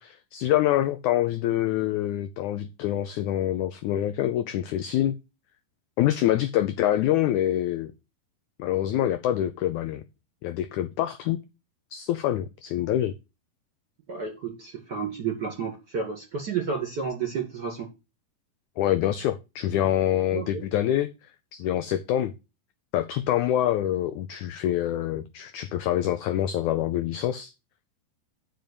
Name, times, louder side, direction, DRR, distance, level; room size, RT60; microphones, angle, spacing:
voice 1, 0.0-5.2 6.0-7.9 8.6-10.0 10.4-11.4 11.9-13.1 18.8-21.1 21.5-22.3 22.9-27.5, left 12 dB, 90° left, 1.7 m, -26 dB
voice 2, 14.1-17.9 20.3-20.6, right 6 dB, 35° right, 2.1 m, -31 dB
9.5 x 5.2 x 7.0 m
omnidirectional pair, 4.2 m